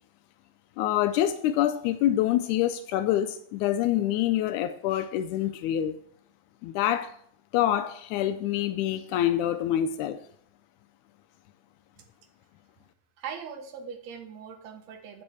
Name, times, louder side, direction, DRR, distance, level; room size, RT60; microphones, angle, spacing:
voice 1, 0.8-6.0 6.6-7.1 7.5-10.2, left 12 dB, 85° left, 10 dB, 2.0 m, -26 dB
voice 2, 13.2-15.2, right 7 dB, 65° right, 4 dB, 2.4 m, -40 dB
9.8 x 5.2 x 7.1 m, 0.62 s
omnidirectional pair, 3.4 m